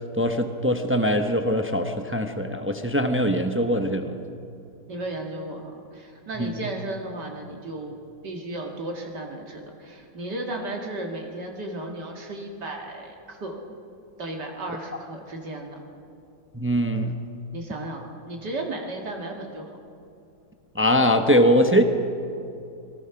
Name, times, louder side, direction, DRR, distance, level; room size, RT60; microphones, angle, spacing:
voice 1, 0.2-4.2 6.4-6.5 16.5-17.2 20.7-21.8, equal, 20° right, 6 dB, 0.3 m, -22 dB
voice 2, 4.9-8.0 8.2-13.6 14.2-15.8 17.5-19.7, right 2 dB, 60° right, 1 dB, 2.5 m, -34 dB
27.0 x 19.0 x 5.9 m, 2.6 s
omnidirectional pair, 2.1 m